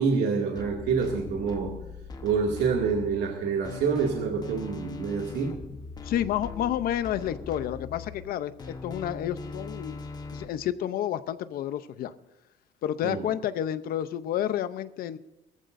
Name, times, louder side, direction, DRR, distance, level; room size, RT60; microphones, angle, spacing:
voice 1, 0.0-1.7 2.2-5.5 13.0-13.2, right 5 dB, 80° right, 0 dB, 2.2 m, -27 dB
sound 1, 0.6-10.4, left 4 dB, 25° left, 1.0 m, -40 dB
voice 2, 6.0-8.5 8.8-10.0 10.3-12.1 12.8-15.2, left 11 dB, 65° left, 13 dB, 0.6 m, -30 dB
20.5 x 14.5 x 2.6 m, 0.92 s
cardioid pair, 165°, 17 cm